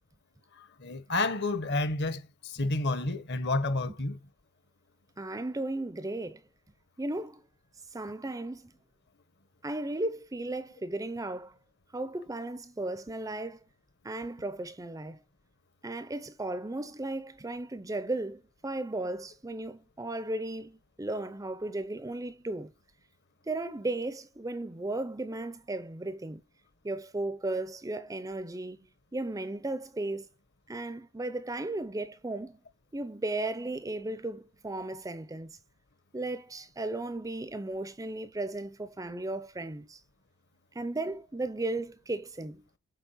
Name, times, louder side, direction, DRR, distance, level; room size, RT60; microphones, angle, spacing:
voice 1, 0.8-4.2, left 2 dB, 50° left, 1.0 m, -30 dB
voice 2, 5.2-6.4 7.0-7.4 7.9-8.7 9.6-11.5 11.9-13.6 14.0-15.2 15.8-22.7 23.5-26.4 26.8-28.9 29.1-30.3 30.7-32.6 32.9-35.6 36.1-40.0 40.7-42.6, right 2 dB, 15° right, 0.5 m, -35 dB
7.0 x 4.1 x 5.6 m
head